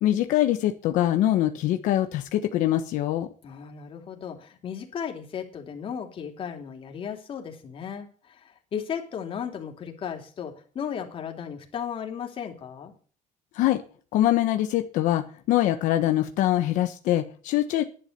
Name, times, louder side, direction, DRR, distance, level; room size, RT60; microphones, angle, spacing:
voice 1, 0.0-3.3 13.5-13.8 14.1-17.8, left 13 dB, 90° left, 7 dB, 1.3 m, -23 dB
voice 2, 3.4-12.9, left 7 dB, 45° left, 4 dB, 3.2 m, -35 dB
12.0 x 11.0 x 6.8 m, 0.41 s
cardioid pair, 140°, 13 cm